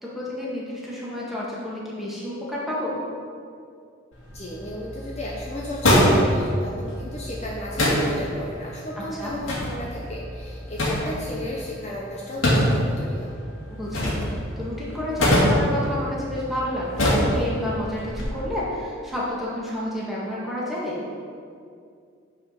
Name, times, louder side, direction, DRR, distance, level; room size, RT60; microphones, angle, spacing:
voice 1, 0.0-3.0 9.1-9.3 13.7-21.0, left 1 dB, ahead, -7 dB, 1.9 m, -30 dB
sound 1, 4.1-18.2, equal, 80° left, 2.4 m, -25 dB
voice 2, 4.3-13.3, left 1 dB, 35° left, -3 dB, 0.9 m, -34 dB
9.4 x 5.0 x 5.8 m, 2.3 s
head